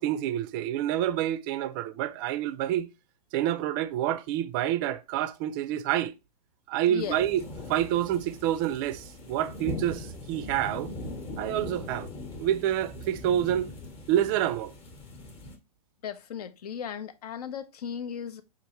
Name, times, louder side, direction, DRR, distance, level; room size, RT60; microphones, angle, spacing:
voice 1, 0.0-2.9 3.3-6.1 6.7-7.4 7.7-10.9 11.4-12.1 12.4-13.7 14.1-14.7, right 12 dB, 35° right, 0.4 m, -28 dB
voice 2, 6.9-7.2 16.0-18.4, left 8 dB, 70° left, 0.6 m, -36 dB
sound 1, 7.0-15.6, left 2 dB, 25° left, 0.9 m, -40 dB
5.2 x 2.5 x 2.9 m
hypercardioid pair, 130°, 21 cm